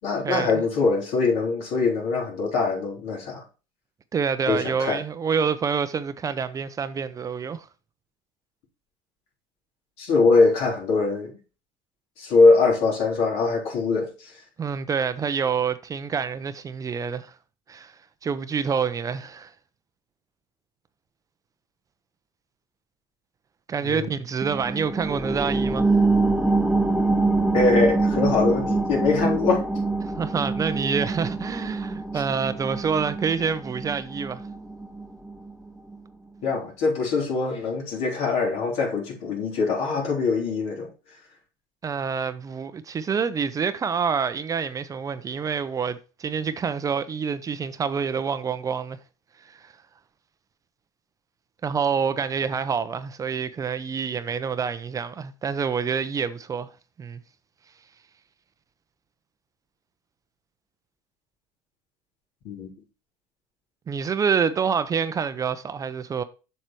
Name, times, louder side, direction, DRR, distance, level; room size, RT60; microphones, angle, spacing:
voice 1, 0.0-3.4 4.5-5.0 10.0-11.4 12.2-14.4 23.8-24.1 27.5-29.7 32.1-32.2 36.4-41.2 62.4-62.7, left 4 dB, 65° left, 3.6 m, -23 dB
voice 2, 4.1-7.7 14.6-17.3 17.7-17.9 18.2-19.5 23.7-25.9 30.0-34.5 41.8-49.0 49.4-49.7 51.6-56.7 57.0-57.2 63.9-66.2, right 6 dB, 30° right, 0.7 m, -27 dB
sound 1, 24.4-35.5 35.9-36.0, right 3 dB, 5° right, 1.0 m, -25 dB
7.4 x 6.6 x 3.1 m
hypercardioid pair, 90°, 12 cm